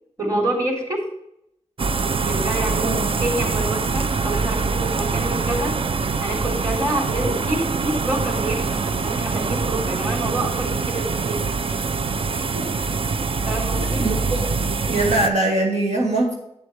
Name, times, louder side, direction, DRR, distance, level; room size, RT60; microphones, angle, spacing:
voice 1, 0.2-1.1 2.2-5.8 6.2-11.5 13.5-14.0, right 1 dB, 30° right, 0 dB, 3.4 m, -27 dB
sound 1, 1.8-15.3, right 4 dB, 50° right, 0.5 m, -24 dB
voice 2, 2.8-3.1 12.2-12.7 13.8-14.4 14.9-16.3, right 2 dB, 80° right, -1 dB, 1.8 m, -23 dB
8.4 x 7.8 x 3.2 m, 0.77 s
wide cardioid pair, 60°, 11 cm